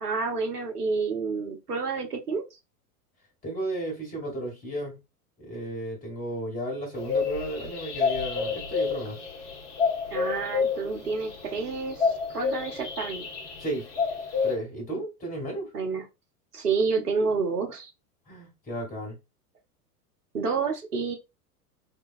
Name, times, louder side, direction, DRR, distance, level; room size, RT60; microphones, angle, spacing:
voice 1, 0.0-2.4 10.1-13.3 15.7-16.0 16.5-17.9 20.3-21.2, right 4 dB, 80° right, 0.8 m, -29 dB
voice 2, 3.4-5.0 5.4-9.2 13.6-13.9 14.4-15.7 18.3-19.2, right 1 dB, 20° left, 1.4 m, -33 dB
sound 1, 6.9-14.5, left 5 dB, 40° left, 1.0 m, -29 dB
3.7 x 2.3 x 2.4 m
figure-of-eight pair, 90°, 46 cm